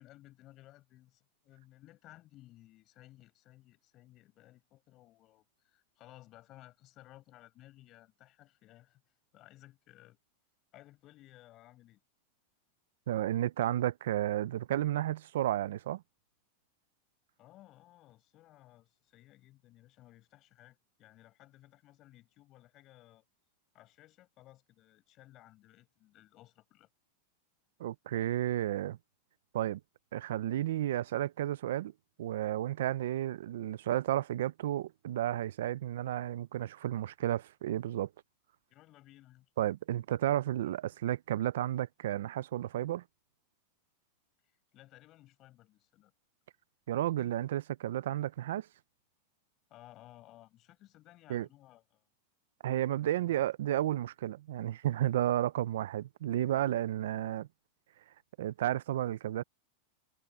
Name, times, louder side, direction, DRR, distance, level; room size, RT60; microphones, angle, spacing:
voice 1, 0.0-9.0 9.3-10.2 10.7-12.0 17.4-23.2 23.7-26.9 38.7-39.5 44.7-46.1 49.7-52.0 53.2-53.5, left 16 dB, 30° left, 6.0 m, -58 dB
voice 2, 13.1-16.0 27.8-29.0 29.5-29.8 30.1-31.9 32.2-38.1 39.6-43.0 46.9-48.7 51.3-51.5 52.6-57.5 58.4-59.4, right 13 dB, 70° right, 0.5 m, -32 dB
supercardioid pair, 170°, 0 cm